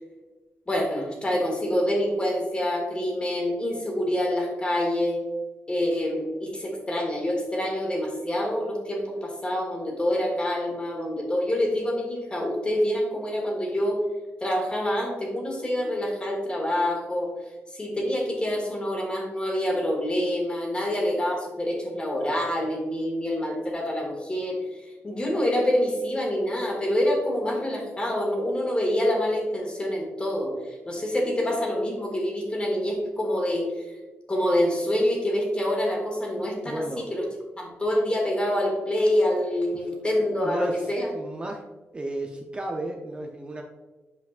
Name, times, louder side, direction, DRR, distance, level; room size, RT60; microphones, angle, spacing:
voice 1, 0.7-5.2 5.7-14.0 14.4-17.4 17.7-24.6 25.0-33.8 34.3-36.8 37.1-37.2 37.6-41.1, left 1 dB, 25° left, 0 dB, 1.9 m, -26 dB
voice 2, 36.6-37.1 39.7-39.9 40.4-41.6 41.9-43.6, right 1 dB, 25° right, 1 dB, 0.6 m, -34 dB
7.9 x 5.1 x 2.5 m, 1.2 s
cardioid pair, 100°, 5 cm